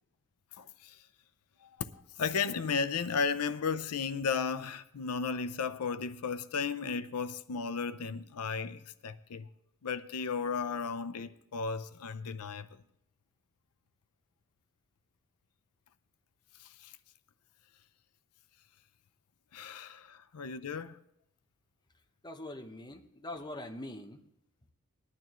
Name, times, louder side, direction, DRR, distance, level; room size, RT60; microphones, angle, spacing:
voice 1, 0.6-1.0 1.6-9.5 9.8-12.7 16.6-16.9 19.5-21.0, left 5 dB, 90° left, 0.6 m, -35 dB
voice 2, 22.2-24.3, left 1 dB, 20° left, 0.8 m, -43 dB
19.5 x 11.0 x 3.1 m
head